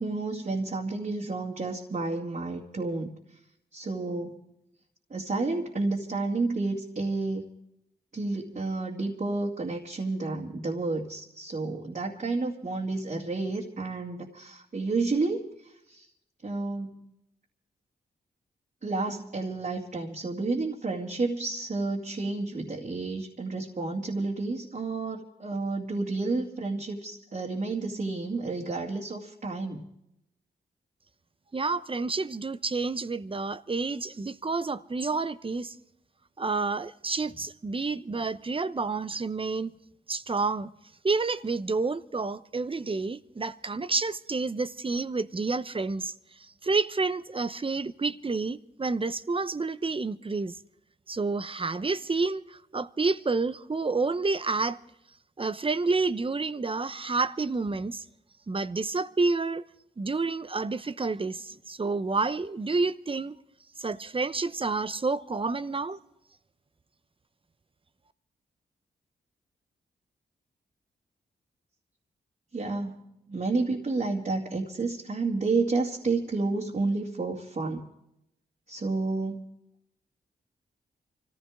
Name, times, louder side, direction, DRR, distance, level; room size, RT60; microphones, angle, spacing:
voice 1, 0.0-3.2 3.7-4.4 5.1-7.4 8.1-16.1 16.4-16.9 18.8-29.9 72.5-73.0 73.3-77.9 78.7-79.5, right 3 dB, 45° right, 2.3 m, -30 dB
voice 2, 31.5-35.7 36.4-39.7 40.1-40.7 41.0-46.1 46.4-50.6 51.1-54.8 55.4-58.0 58.5-59.6 60.0-63.4 63.8-66.0, right 3 dB, 30° right, 0.8 m, -29 dB
25.0 x 15.0 x 3.6 m
cardioid pair, 50°, 18 cm